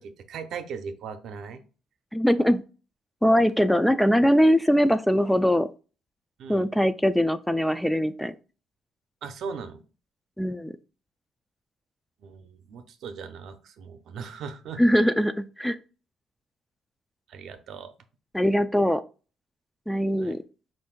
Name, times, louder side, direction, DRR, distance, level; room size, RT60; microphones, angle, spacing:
voice 1, 0.0-1.6 6.4-6.7 9.2-9.8 12.2-14.8 17.3-17.9 20.2-20.4, right 6 dB, 75° right, 8 dB, 0.6 m, -38 dB
voice 2, 2.1-2.6 3.2-5.7 6.5-8.3 10.4-10.7 14.8-15.8 18.3-19.0 19.9-20.4, equal, 5° left, 11 dB, 0.3 m, -21 dB
5.3 x 2.6 x 3.6 m, 0.35 s
cardioid pair, 90°, 0 cm